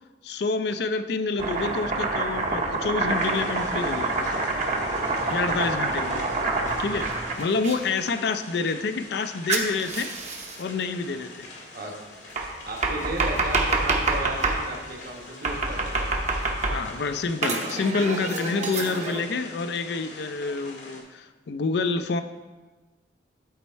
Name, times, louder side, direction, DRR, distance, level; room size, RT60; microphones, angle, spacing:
voice 1, 0.2-4.3 5.3-6.3 6.8-10.1 10.6-11.5 16.7-22.2, left 4 dB, 65° left, 10 dB, 0.4 m, -28 dB
Domestic sounds home sounds, 1.4-7.8 9.5-10.6 12.4-14.6 15.4-17.0 17.4-19.2, right 3 dB, 40° right, 0.9 m, -27 dB
sound 1, 3.1-21.0, left 2 dB, 85° left, 1.8 m, -44 dB
voice 2, 12.7-16.1, right 1 dB, 55° right, 0 dB, 1.2 m, -34 dB
10.0 x 4.3 x 4.5 m, 1.2 s
head